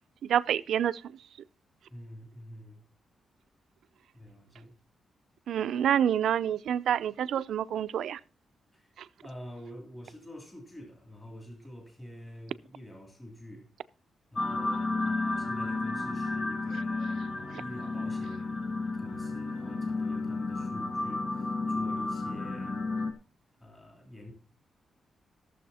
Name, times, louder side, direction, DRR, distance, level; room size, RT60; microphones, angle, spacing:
voice 1, 0.2-1.0 5.5-8.2, right 9 dB, 85° right, 0.5 m, -27 dB
voice 2, 1.9-2.9 4.1-4.7 8.7-8.9 9.2-13.7 14.3-18.6 19.0-22.8 23.6-24.3, equal, 15° left, 3.0 m, -47 dB
sound 1, 14.3-23.1, left 3 dB, 45° left, 1.3 m, -32 dB
14.5 x 7.2 x 4.2 m
wide cardioid pair, 175°, 0 cm